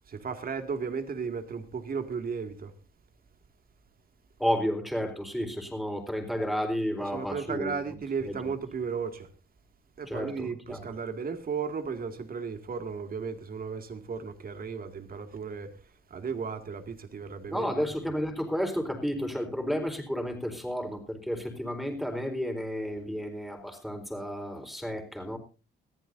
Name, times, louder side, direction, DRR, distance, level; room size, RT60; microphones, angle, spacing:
voice 1, 0.1-2.7 7.1-9.3 10.0-15.8 16.1-17.7, right 5 dB, 45° right, 2.3 m, -35 dB
voice 2, 4.4-7.7 8.2-8.4 10.1-10.8 17.5-25.4, equal, ahead, 4.1 m, -32 dB
22.0 x 14.0 x 2.7 m
cardioid pair, 90°, 20 cm